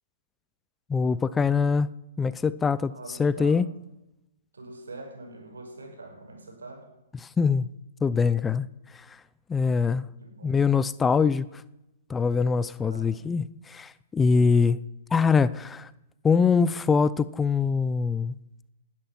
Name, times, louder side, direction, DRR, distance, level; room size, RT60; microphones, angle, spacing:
voice 1, 0.9-1.9 2.2-3.7 7.2-7.7 8.0-9.2 9.5-10.1 10.4-11.6 12.1-14.8 15.1-15.9 16.2-18.4, left 5 dB, 15° left, 0.5 m, -23 dB
voice 2, 2.9-3.7 4.5-6.9 10.2-10.7 12.8-13.3, right 2 dB, 80° right, 5.8 m, -44 dB
19.5 x 12.0 x 6.1 m
hypercardioid pair, 120°, 0 cm